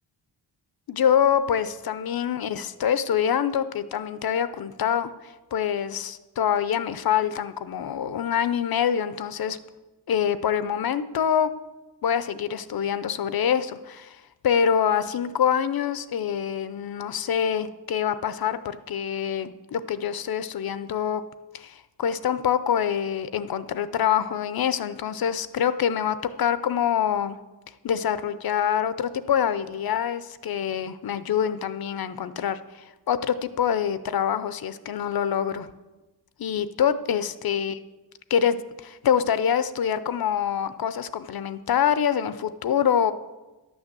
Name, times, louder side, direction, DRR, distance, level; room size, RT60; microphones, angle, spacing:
voice 1, 0.9-9.6 10.1-11.5 12.0-14.2 14.4-21.2 21.5-27.4 27.8-35.7 36.4-37.8 38.3-43.1, left 8 dB, 60° left, 13 dB, 0.6 m, -25 dB
11.0 x 6.3 x 7.4 m, 1.1 s
wide cardioid pair, 140°, 41 cm